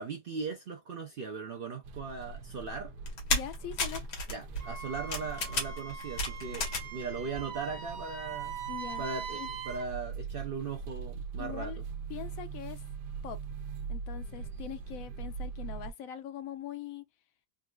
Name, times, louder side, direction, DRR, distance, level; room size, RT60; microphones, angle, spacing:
voice 1, 0.0-2.9 4.3-8.6 9.0-9.4 9.6-11.8, right 5 dB, 70° right, 0.5 m, -38 dB
sound 1, 1.8-15.9, right 5 dB, 85° right, 1.2 m, -42 dB
sound 2, 3.1-7.0 7.3-8.1 8.4-8.5, left 3 dB, 85° left, 1.7 m, -33 dB
voice 2, 3.3-4.0 8.7-9.0 9.3-9.5 11.4-11.8 12.1-12.8 13.2-13.4 13.9-17.0, left 10 dB, 70° left, 0.9 m, -42 dB
Wind instrument woodwind instrument, 4.6-9.9, right 8 dB, 45° right, 1.0 m, -42 dB
3.8 x 2.4 x 2.3 m
omnidirectional pair, 1.7 m